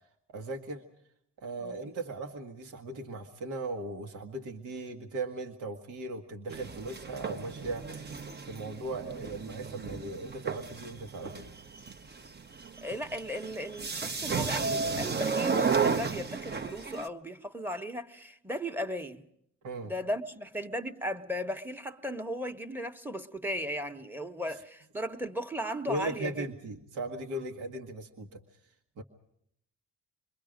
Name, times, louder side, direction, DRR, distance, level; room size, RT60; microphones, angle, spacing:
voice 1, 0.3-0.8 1.4-11.5 19.6-19.9 25.9-28.4 29.0-29.1, right 2 dB, 80° right, 1.6 m, -38 dB
voice 2, 1.6-1.9 12.8-19.2 19.8-26.5, equal, 5° right, 1.2 m, -36 dB
sound 1, 6.5-17.1, right 5 dB, 35° right, 0.9 m, -33 dB
27.5 x 22.0 x 5.1 m
cardioid pair, 90°, 30 cm